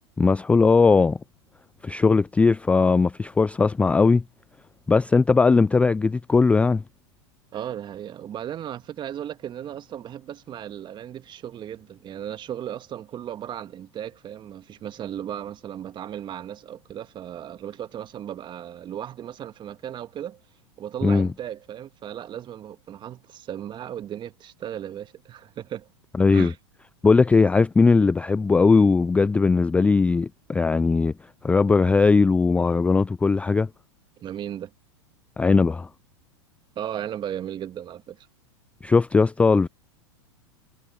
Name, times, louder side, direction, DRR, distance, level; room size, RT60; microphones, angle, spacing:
voice 1, 0.2-1.2 1.8-4.2 4.9-6.8 21.0-21.3 26.2-26.5 27.0-31.1 31.4-33.7 35.4-35.9 38.8-39.7, left 4 dB, 10° left, 0.3 m, -19 dB
voice 2, 7.5-20.4 20.8-25.9 26.3-26.6 34.2-34.7 36.8-38.3, right 10 dB, 30° right, 1.7 m, -36 dB
hypercardioid pair, 105°, 15 cm